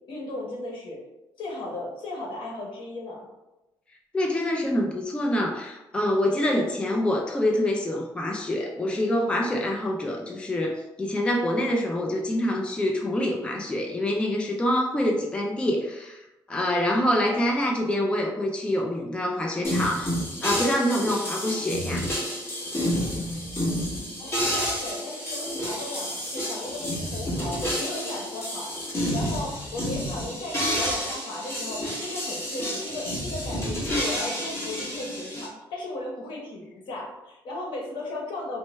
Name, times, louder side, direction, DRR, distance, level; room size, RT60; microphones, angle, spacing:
voice 1, 0.1-1.0 1.4-3.3 24.2-28.7 29.1-38.6, left 2 dB, 75° left, -1 dB, 1.0 m, -36 dB
voice 2, 4.1-20.1 20.4-22.1, left 1 dB, 10° left, 0 dB, 0.3 m, -26 dB
sound 1, 19.6-35.5, equal, 30° left, 1.3 m, -30 dB
4.3 x 2.2 x 3.0 m, 0.97 s
cardioid pair, 160°, 8 cm